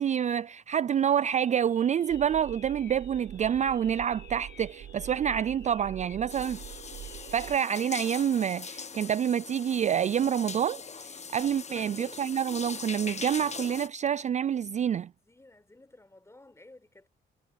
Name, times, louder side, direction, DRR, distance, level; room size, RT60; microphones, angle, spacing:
voice 1, 0.0-6.6 7.3-15.1, right 9 dB, 35° right, 0.4 m, -27 dB
sound 1, 1.1-8.0, left 9 dB, 65° left, 4.2 m, -55 dB
sound 2, 2.1-7.6, right 11 dB, 75° right, 5.9 m, -45 dB
sound 3, 6.3-13.9, left 5 dB, 35° left, 1.4 m, -41 dB
voice 2, 15.2-17.1, left 2 dB, 15° left, 4.5 m, -55 dB
cardioid pair, 90°, 20 cm